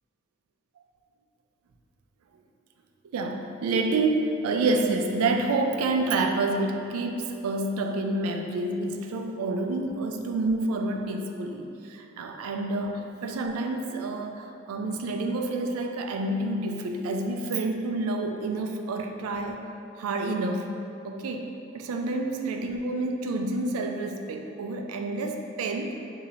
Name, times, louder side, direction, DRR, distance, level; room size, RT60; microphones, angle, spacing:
voice 1, 3.0-19.7 20.0-20.7 21.0-21.5 21.7-26.0, right 2 dB, 90° right, 4 dB, 0.3 m, -28 dB
2.9 x 2.7 x 4.0 m, 2.7 s
head